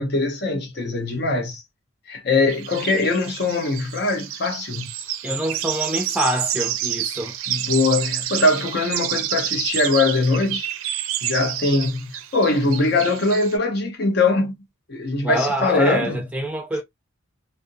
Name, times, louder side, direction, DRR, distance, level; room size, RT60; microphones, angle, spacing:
voice 1, 0.0-1.6 2.1-4.9 7.5-10.7 11.2-14.6 14.9-16.2, left 3 dB, 55° left, 0.8 m, -22 dB
sound 1, 2.5-13.6, right 11 dB, 80° right, 0.4 m, -29 dB
voice 2, 5.2-7.3 15.2-16.8, right 1 dB, 5° right, 0.4 m, -25 dB
2.5 x 2.1 x 2.6 m
head